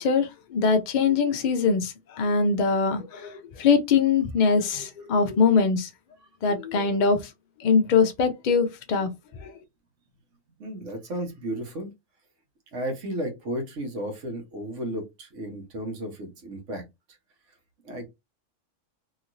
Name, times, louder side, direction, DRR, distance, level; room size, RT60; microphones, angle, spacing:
voice 1, 0.0-5.9 6.4-7.3 7.6-9.1 9.4-9.5, left 5 dB, 70° left, 0.4 m, -22 dB
voice 2, 10.6-11.9 12.7-16.8 17.8-18.1, right 1 dB, 70° right, 1.3 m, -33 dB
3.0 x 2.8 x 2.5 m
omnidirectional pair, 1.3 m